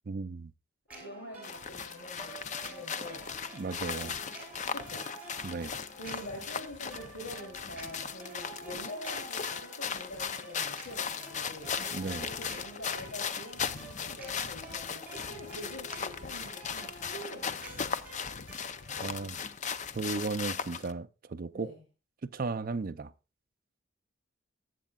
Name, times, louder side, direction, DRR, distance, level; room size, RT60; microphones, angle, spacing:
voice 1, 0.1-0.5 3.5-4.2 5.4-5.7 11.9-12.3 19.0-19.4 19.9-21.7 22.2-23.1, right 4 dB, 45° right, 0.5 m, -35 dB
sound 1, 0.9-19.2, right 2 dB, 10° right, 3.9 m, -49 dB
voice 2, 1.0-3.3 3.7-4.1 4.7-5.0 5.9-11.7 12.2-17.9 21.5-21.8, equal, 75° left, 3.0 m, -46 dB
sound 2, 1.4-20.9, left 6 dB, 40° left, 0.5 m, -38 dB
19.0 x 8.3 x 2.3 m
head